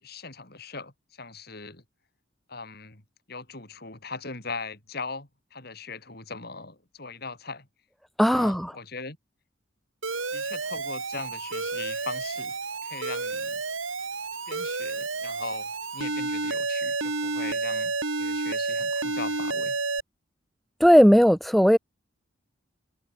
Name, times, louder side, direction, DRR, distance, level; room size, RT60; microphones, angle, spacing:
voice 1, 0.0-1.8 2.5-3.0 3.3-7.7 8.2-9.2 10.3-12.6 12.8-13.6 14.5-19.8, left 4 dB, 50° left, 4.0 m, -40 dB
voice 2, 8.2-8.7 20.8-21.8, equal, ahead, 0.4 m, -17 dB
Alarm, 10.0-20.0, right 3 dB, 85° right, 3.4 m, -30 dB
head